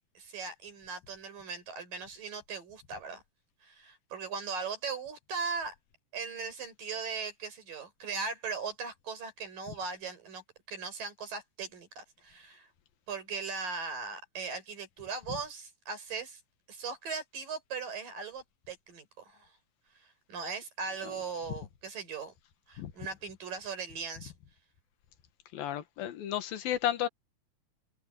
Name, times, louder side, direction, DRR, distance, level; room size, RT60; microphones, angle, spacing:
voice 1, 0.2-3.2 3.6-5.7 6.1-12.7 13.1-16.4 16.7-19.5 20.0-22.3 22.7-24.3, right 5 dB, 70° right, 7.6 m, -39 dB
voice 2, 25.5-27.1, left 11 dB, 90° left, 3.3 m, -32 dB
omnidirectional pair, 4.0 m